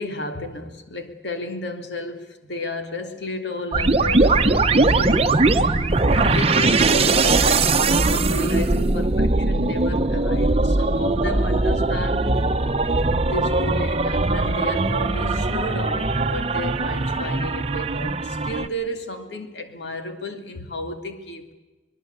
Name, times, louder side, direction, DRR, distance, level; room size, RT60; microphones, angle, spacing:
voice 1, 0.0-5.5 6.1-12.4 13.1-21.5, left 1 dB, 70° left, 6 dB, 2.6 m, -32 dB
sound 1, 3.7-18.7, right 3 dB, 35° right, 0.9 m, -20 dB
23.5 x 21.5 x 8.1 m, 1.1 s
head